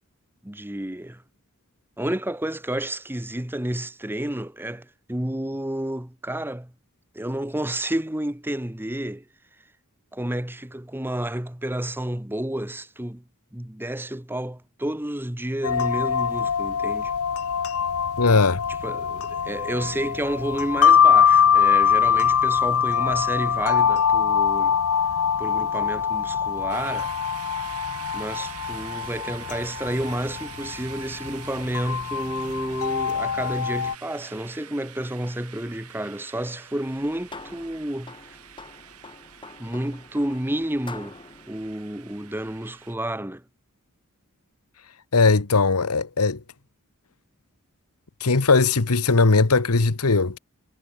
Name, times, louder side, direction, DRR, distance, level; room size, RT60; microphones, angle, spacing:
voice 1, 0.4-1.2 2.0-6.7 7.1-9.2 10.1-13.2 13.5-17.1 18.8-24.8 25.4-27.1 28.1-38.4 39.6-41.2 41.5-43.4, right 1 dB, 10° right, 1.2 m, -30 dB
sound 1, 15.6-34.0, left 7 dB, 70° left, 0.6 m, -23 dB
voice 2, 18.2-18.6 45.1-46.4 48.2-50.4, left 3 dB, 90° left, 1.2 m, -19 dB
sound 2, 26.7-42.9, right 9 dB, 85° right, 3.8 m, -45 dB
sound 3, 36.9-42.7, left 3 dB, 20° left, 3.0 m, -45 dB
head